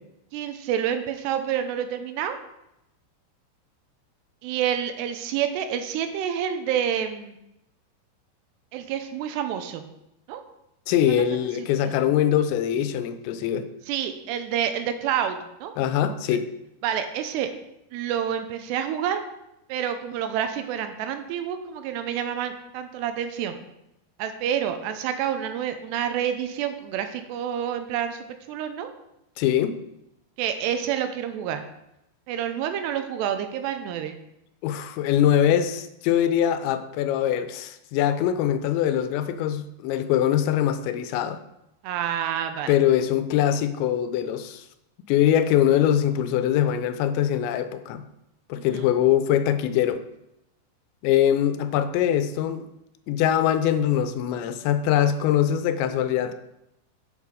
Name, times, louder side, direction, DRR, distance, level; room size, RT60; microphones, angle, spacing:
voice 1, 0.3-2.4 4.4-7.4 8.7-9.8 10.3-10.4 11.1-11.2 11.8-11.9 13.9-15.7 16.8-17.5 17.9-19.2 19.7-23.6 24.2-28.9 30.4-31.6 32.3-34.2 41.8-42.7 48.6-48.9, right 9 dB, 80° right, 8 dB, 2.7 m, -28 dB
voice 2, 10.9-13.7 15.8-16.5 29.4-29.8 34.6-41.4 42.7-44.7 45.1-48.1 48.5-50.0 51.0-52.7 53.1-56.3, left 10 dB, 90° left, 10 dB, 3.0 m, -23 dB
7.5 x 7.0 x 4.9 m, 0.85 s
omnidirectional pair, 5.1 m